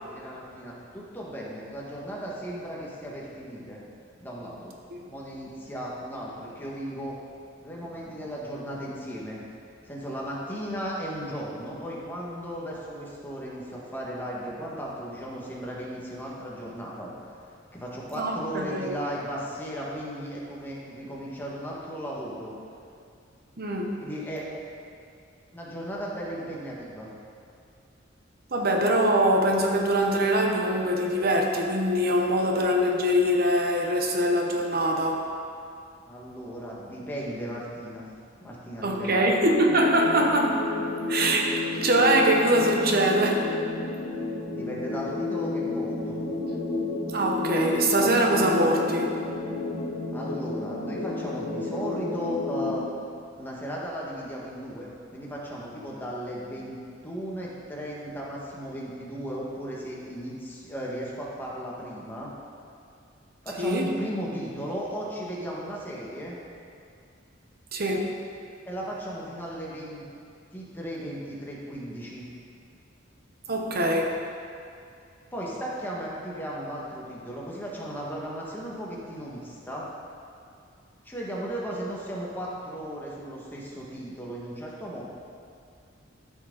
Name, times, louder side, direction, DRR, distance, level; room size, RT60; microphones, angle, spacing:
voice 1, 0.0-3.8 4.2-4.7 5.1-7.2 7.6-9.4 9.8-17.1 17.7-22.6 24.0-24.5 25.5-27.1 36.0-38.1 38.4-39.2 44.5-46.2 50.1-52.8 53.4-62.3 63.4-66.4 68.6-70.0 70.5-72.3 75.3-79.9 81.0-85.0, equal, 10° left, -5 dB, 1.6 m, -36 dB
voice 2, 18.1-18.9 23.6-24.0 28.5-35.2 38.8-40.6 41.1-43.5 47.1-49.2 63.6-63.9 67.7-68.1 73.5-74.2, right 1 dB, 50° right, 2 dB, 1.0 m, -23 dB
sound 1, 39.7-52.7, left 3 dB, 50° left, 1.5 m, -31 dB
13.0 x 6.2 x 3.9 m, 2.4 s
head